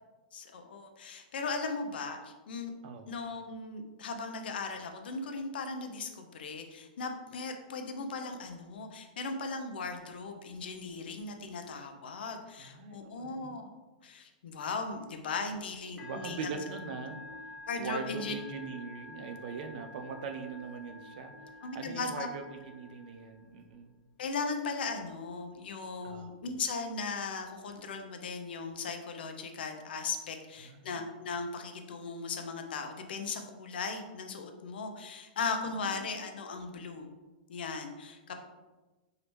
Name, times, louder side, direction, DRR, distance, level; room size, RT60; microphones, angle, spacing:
voice 1, 0.3-2.7 3.1-13.7 14.0-16.5 17.7-18.3 21.6-22.3 24.2-37.1 37.5-38.4, left 4 dB, 80° left, 5 dB, 0.7 m, -38 dB
voice 2, 12.6-13.6 16.0-17.2 17.8-23.9 26.0-26.3 30.6-31.0 35.8-36.1, right 5 dB, 60° right, 6 dB, 0.6 m, -41 dB
Musical instrument, 16.0-23.6, left 2 dB, 20° left, 1.3 m, -49 dB
4.8 x 3.2 x 3.1 m, 1.2 s
hypercardioid pair, 140°, 5 cm